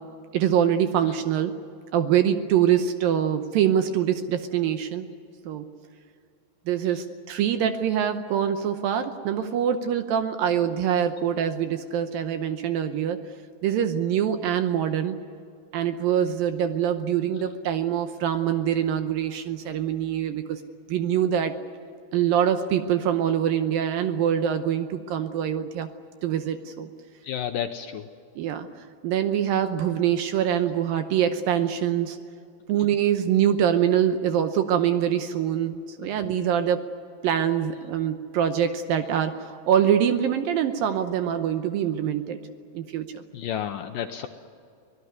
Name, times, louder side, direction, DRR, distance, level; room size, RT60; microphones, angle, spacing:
voice 1, 0.3-1.5 1.9-5.1 5.5-5.7 6.7-13.2 13.6-15.2 15.7-20.6 20.9-21.6 22.1-25.9 26.2-26.9 28.4-28.7 29.0-32.2 32.7-36.9 37.2-42.4 42.7-43.2, right 9 dB, 75° right, 9 dB, 2.3 m, -24 dB
voice 2, 27.2-28.1 43.3-44.3, left 9 dB, 75° left, 6 dB, 2.1 m, -31 dB
25.0 x 18.0 x 9.6 m, 2.5 s
omnidirectional pair, 4.7 m